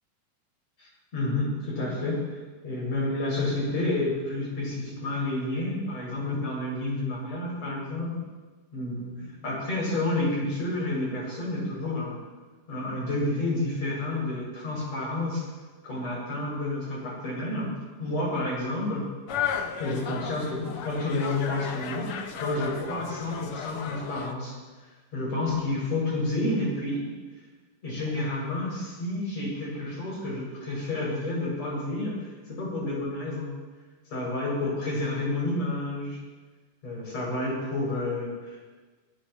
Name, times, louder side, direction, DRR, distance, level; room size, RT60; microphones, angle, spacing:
voice 1, 0.8-2.2 2.6-8.1 8.7-12.2 12.7-15.5 15.8-17.7 18.0-19.1 19.8-24.6 25.1-27.1 27.8-33.5 34.1-36.2 36.8-38.6, left 2 dB, 50° left, -5 dB, 8.3 m, -30 dB
sound 1, 19.3-24.3, left 7 dB, 80° left, 1.2 m, -34 dB
24.0 x 18.5 x 3.2 m, 1.3 s
omnidirectional pair, 3.9 m